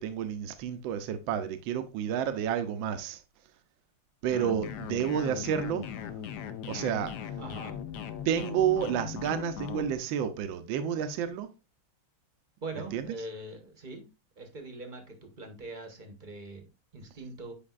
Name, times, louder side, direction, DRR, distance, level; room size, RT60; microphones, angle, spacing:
voice 1, 0.0-3.2 4.2-6.0 6.6-7.3 8.2-11.5 12.8-13.1, right 9 dB, 80° right, 1.4 m, -30 dB
sound 1, 4.3-10.0, left 9 dB, 70° left, 1.1 m, -39 dB
voice 2, 7.4-7.8 12.6-14.0 14.4-17.5, right 2 dB, 35° right, 0.8 m, -42 dB
8.6 x 5.0 x 2.4 m
omnidirectional pair, 2.2 m